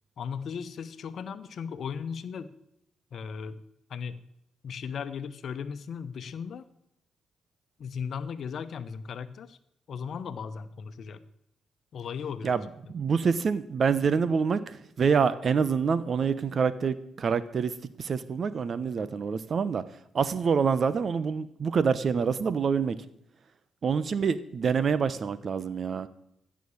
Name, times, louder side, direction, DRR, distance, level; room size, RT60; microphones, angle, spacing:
voice 1, 0.2-2.5 3.1-3.6 3.9-4.2 4.6-6.6 7.8-9.6 9.9-11.2 11.9-12.6, left 6 dB, 65° left, 12 dB, 1.0 m, -36 dB
voice 2, 12.4-17.7 18.0-19.8 20.1-23.1 23.8-26.1, right 6 dB, 55° right, 16 dB, 1.0 m, -26 dB
15.5 x 6.3 x 8.7 m, 0.78 s
hypercardioid pair, 45°, 0 cm